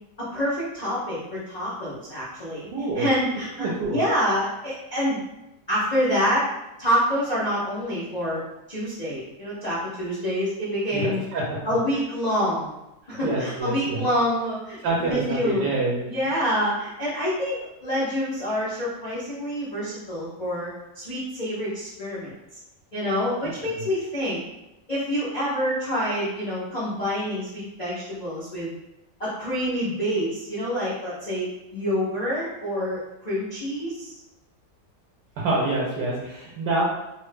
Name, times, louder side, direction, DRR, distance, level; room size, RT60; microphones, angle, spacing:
voice 1, 0.2-2.7 2.9-5.2 5.7-6.5 6.8-8.4 8.7-11.2 11.6-12.7 13.1-15.7 16.1-20.7 20.9-22.3 22.9-24.4 24.9-28.7 29.2-34.1, equal, 85° left, -9 dB, 0.3 m, -27 dB
voice 2, 2.7-3.1 3.6-4.0 10.9-11.8 13.2-14.1 14.8-16.1 23.8-23.9 35.4-36.8, right 2 dB, 80° right, -4 dB, 1.2 m, -26 dB
3.4 x 2.1 x 3.1 m, 0.92 s
omnidirectional pair, 1.8 m